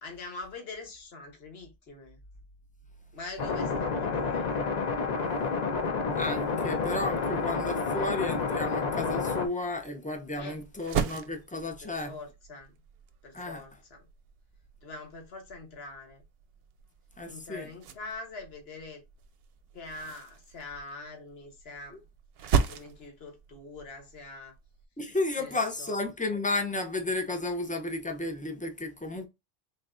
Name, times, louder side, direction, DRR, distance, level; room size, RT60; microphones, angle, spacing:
voice 1, 0.0-2.2 3.1-4.6 10.3-10.6 11.8-12.7 13.2-14.0 14.8-16.2 17.3-19.0 19.7-22.0 22.6-24.5 25.4-26.1, left 3 dB, 75° left, 1.3 m, -44 dB
sound 1, 3.4-9.5, left 4 dB, 50° left, 0.7 m, -29 dB
voice 2, 6.2-12.1 13.3-13.6 17.2-17.7 25.0-29.3, left 2 dB, 10° left, 0.4 m, -33 dB
sound 2, 10.1-24.9, right 6 dB, 70° right, 0.8 m, -37 dB
3.9 x 3.3 x 2.4 m
omnidirectional pair, 1.0 m